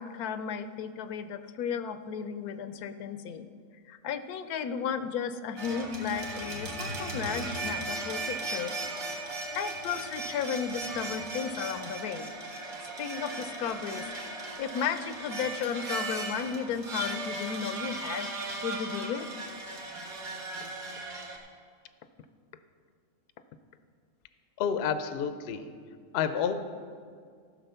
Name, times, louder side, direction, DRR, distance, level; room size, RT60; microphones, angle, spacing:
voice 1, 0.0-3.5 3.9-8.8 9.5-12.3 13.0-18.3 18.6-19.3, left 7 dB, 80° left, 11 dB, 1.1 m, -34 dB
sound 1, 5.6-21.4, right 2 dB, 65° right, 1.9 m, -37 dB
voice 2, 24.6-25.7 26.1-26.5, left 7 dB, 60° left, 10 dB, 0.7 m, -29 dB
14.0 x 6.4 x 5.6 m, 2.1 s
omnidirectional pair, 1.6 m